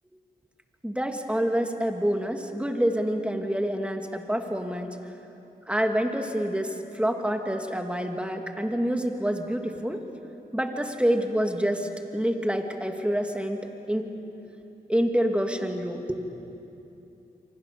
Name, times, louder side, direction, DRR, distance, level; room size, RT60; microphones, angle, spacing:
voice 1, 0.8-5.0 5.7-10.0 10.5-13.6 13.9-14.1 14.4-14.5 14.9-16.2, equal, 5° right, 4 dB, 2.9 m, -27 dB
28.0 x 24.5 x 7.1 m, 2.9 s
cardioid pair, 50°, 17 cm